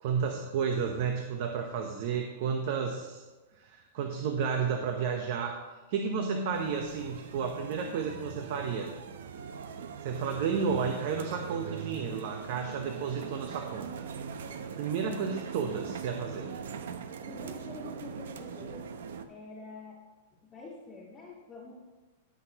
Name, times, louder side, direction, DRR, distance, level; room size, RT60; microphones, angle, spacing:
voice 1, 0.0-3.2 3.6-5.6 5.9-8.9 10.0-14.0 14.8-16.5, right 6 dB, 50° right, 4 dB, 0.9 m, -32 dB
sound 1, 6.5-19.3, right 6 dB, 80° right, 0.7 m, -41 dB
voice 2, 17.2-18.8 19.3-20.0 20.4-21.7, left 2 dB, 15° left, -6 dB, 1.7 m, -46 dB
17.5 x 6.2 x 3.0 m, 1.2 s
supercardioid pair, 160°, 0 cm